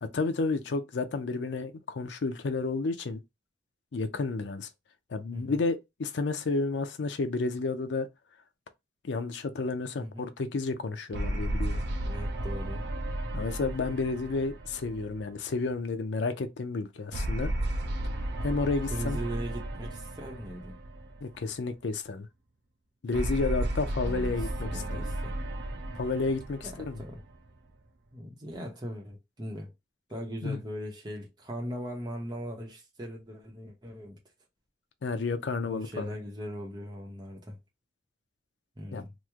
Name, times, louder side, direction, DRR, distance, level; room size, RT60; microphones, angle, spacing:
voice 1, 0.0-3.2 3.9-4.7 5.1-8.1 9.0-11.8 13.3-17.5 18.4-19.2 21.2-22.3 23.0-25.0 25.9-27.0 30.4-30.6 35.0-36.1 38.9-39.0, left 3 dB, 80° left, 0.5 m, -31 dB
voice 2, 10.0-10.3 12.0-12.8 18.9-20.8 24.0-25.4 26.6-27.2 28.1-29.7 30.1-34.2 35.6-37.6 38.8-39.1, equal, 25° right, 0.7 m, -39 dB
sound 1, 11.1-15.7 17.1-21.5 23.1-27.7, right 1 dB, 65° right, 0.5 m, -34 dB
3.0 x 2.1 x 3.5 m
head